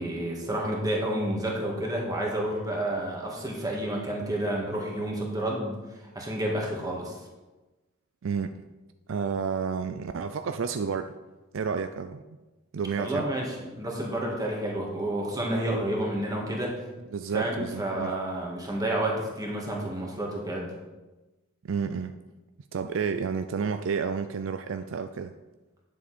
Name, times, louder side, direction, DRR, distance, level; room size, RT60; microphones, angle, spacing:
voice 1, 0.0-7.1 13.0-16.7 17.3-20.7, right 1 dB, 20° right, -1 dB, 1.9 m, -30 dB
voice 2, 8.2-8.6 9.1-11.1 11.5-12.2 12.7-13.3 17.1-18.1 21.6-22.2 22.7-25.3, right 6 dB, 65° right, 8 dB, 0.4 m, -30 dB
9.7 x 7.2 x 4.3 m, 1.1 s
head